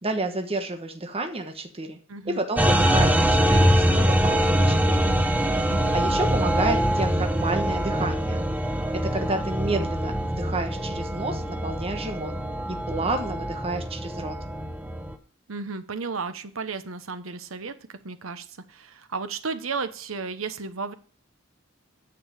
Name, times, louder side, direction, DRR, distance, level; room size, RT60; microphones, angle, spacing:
voice 1, 0.0-2.0 2.2-5.1 5.5-8.4 8.9-12.3 12.9-14.4, right 2 dB, 30° right, 5 dB, 1.2 m, -30 dB
voice 2, 2.1-2.4 5.7-6.0 15.5-17.8 18.0-20.9, right 4 dB, 90° right, 11 dB, 1.0 m, -33 dB
sound 1, 2.6-15.1, equal, 10° right, 0.9 m, -23 dB
9.4 x 6.8 x 5.1 m, 0.40 s
head